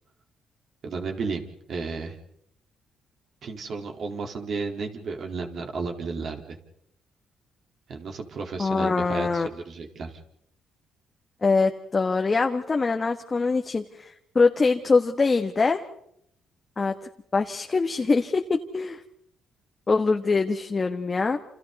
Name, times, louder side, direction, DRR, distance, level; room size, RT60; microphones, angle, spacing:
voice 1, 0.8-1.4 1.7-2.2 3.4-6.6 7.9-10.2, right 4 dB, 60° right, 2 dB, 4.1 m, -33 dB
voice 2, 8.6-9.5 11.4-15.8 16.8-16.9 17.3-19.0 19.9-21.4, left 4 dB, 30° left, 4 dB, 1.5 m, -23 dB
29.0 x 28.0 x 4.2 m, 0.74 s
cardioid pair, 90°, 0 cm